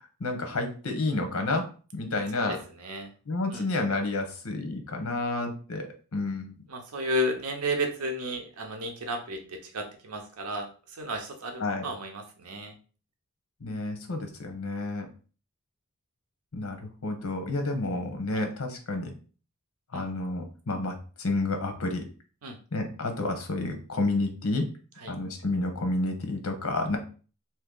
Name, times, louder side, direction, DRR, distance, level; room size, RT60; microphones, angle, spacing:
voice 1, 0.2-1.6 1.9-2.6 3.3-6.5 11.6-11.9 13.6-15.1 16.5-19.1 19.9-22.0 22.7-24.6 25.1-27.0, left 2 dB, 70° left, 5 dB, 0.8 m, -30 dB
voice 2, 2.5-3.1 3.5-3.7 6.7-12.7 18.3-18.4 19.9-20.0 22.4-22.6 25.0-25.1, equal, 90° right, 3 dB, 0.7 m, -33 dB
2.9 x 2.8 x 3.7 m, 0.38 s
head